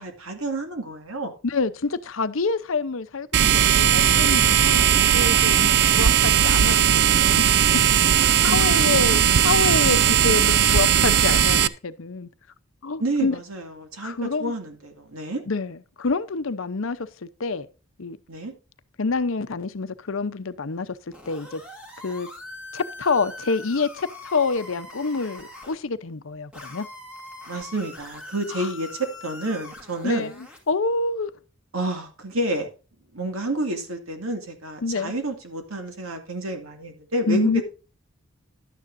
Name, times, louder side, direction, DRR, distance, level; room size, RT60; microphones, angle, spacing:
voice 1, 0.0-1.3 8.2-9.0 13.0-15.4 18.3-18.5 27.5-28.9 29.2-30.3 31.7-32.7 33.1-37.6, right 1 dB, 85° right, 2.2 m, -30 dB
voice 2, 1.4-7.4 8.0-8.1 8.4-12.3 12.8-13.3 14.0-14.5 15.5-17.7 18.0-18.2 19.0-20.9 21.3-21.6 22.0-22.3 22.7-26.9 28.5-28.7 30.0-30.3 30.7-31.3 34.8-35.1 37.3-37.6, left 4 dB, 75° left, 0.7 m, -27 dB
sound 1, 3.3-11.7, right 9 dB, 50° right, 0.4 m, -18 dB
sound 2, 21.1-25.7 26.5-30.7, left 2 dB, 5° right, 2.4 m, -42 dB
11.5 x 9.4 x 2.6 m
head